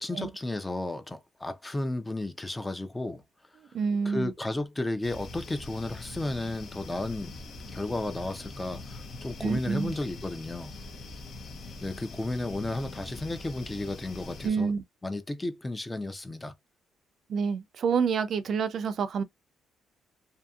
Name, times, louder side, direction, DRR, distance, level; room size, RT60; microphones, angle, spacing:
voice 1, 0.0-3.2 4.1-7.4 7.7-10.7 11.8-14.7 15.0-16.5, left 2 dB, 15° left, 0.5 m, -33 dB
voice 2, 3.7-4.3 9.4-9.9 14.4-14.8 17.3-19.2, right 6 dB, 60° right, 0.4 m, -28 dB
sound 1, 5.0-14.5, left 2 dB, 60° left, 0.7 m, -43 dB
2.7 x 2.7 x 2.3 m
cardioid pair, 90°, 0 cm